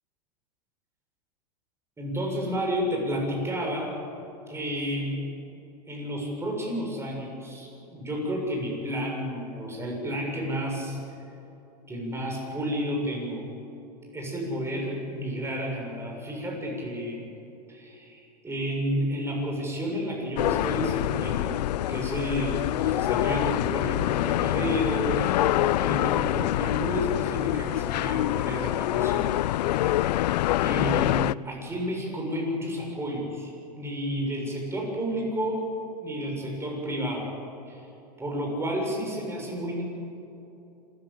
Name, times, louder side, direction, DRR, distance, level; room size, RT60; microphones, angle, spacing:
voice 1, 2.0-3.9 4.5-5.3 5.9-11.0 11.9-13.5 14.1-17.2 17.7-21.6 21.9-29.4 30.0-30.1 30.6-35.7 36.0-37.3 38.2-39.8, equal, 10° right, -1 dB, 7.1 m, -31 dB
sound 1, 20.4-31.3, left 14 dB, 75° left, 0.4 m, -26 dB
27.5 x 14.5 x 7.8 m, 3.0 s
hypercardioid pair, 110°, 21 cm